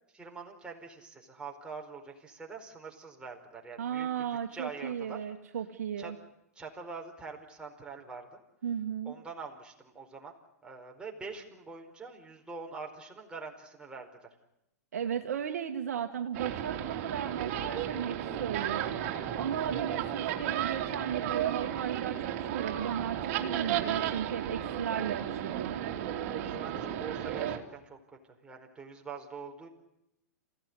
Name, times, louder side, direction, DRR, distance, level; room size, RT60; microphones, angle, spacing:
voice 1, 0.1-4.1 4.5-5.2 6.0-6.1 6.6-8.4 9.0-10.3 10.6-14.3 26.3-28.0 28.4-29.7, right 4 dB, 10° right, 1 dB, 4.7 m, -44 dB
voice 2, 3.8-6.2 8.6-9.1 14.9-25.9 26.4-26.7, right 8 dB, 75° right, 5 dB, 1.7 m, -36 dB
sound 1, 16.3-27.6, right 10 dB, 50° right, 3.0 m, -34 dB
27.5 x 16.5 x 9.9 m, 0.84 s
hypercardioid pair, 115°, 8 cm